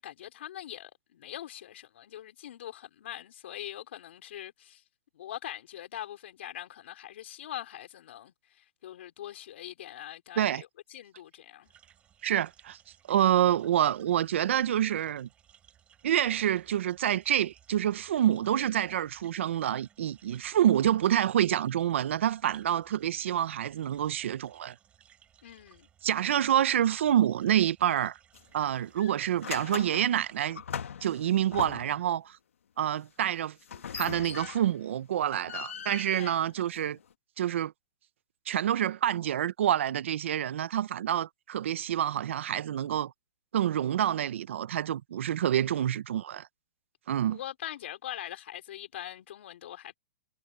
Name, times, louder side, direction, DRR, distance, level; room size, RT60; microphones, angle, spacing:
voice 1, 0.0-4.8 5.1-11.7 25.4-25.9 36.1-36.4 47.3-50.0, left 12 dB, 60° left, 4.2 m, -42 dB
sound 1, 11.6-30.5, right 9 dB, 15° right, 5.2 m, -61 dB
voice 2, 12.2-12.8 13.1-15.3 16.0-24.7 26.0-28.2 28.5-30.6 31.0-32.4 32.8-33.5 33.9-37.0 37.4-37.7 38.5-43.1 43.5-46.5 47.1-47.4, right 11 dB, 65° right, 0.9 m, -27 dB
sound 2, 28.3-28.6 29.0-32.1 33.6-34.9 35.2-37.1, left 8 dB, 90° left, 2.2 m, -40 dB
hypercardioid pair, 155°, 7 cm